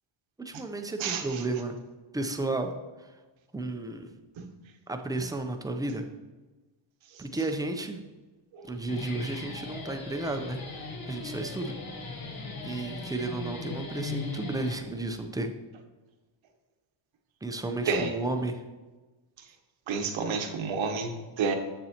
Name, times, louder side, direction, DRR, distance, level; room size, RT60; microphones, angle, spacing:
voice 1, 0.4-1.8 2.1-2.7 3.5-4.1 4.9-6.0 7.2-8.0 8.7-11.7 12.6-15.5 17.4-18.6, right 2 dB, 10° right, 5 dB, 0.5 m, -33 dB
voice 2, 1.0-1.4 4.4-4.5 7.1-7.2 8.5-8.7 17.9-18.2 19.9-21.6, right 5 dB, 70° right, 5 dB, 1.0 m, -30 dB
Guitar, 8.6-15.3, left 3 dB, 45° left, 0.9 m, -39 dB
7.6 x 6.8 x 2.9 m, 1.2 s
cardioid pair, 110°, 48 cm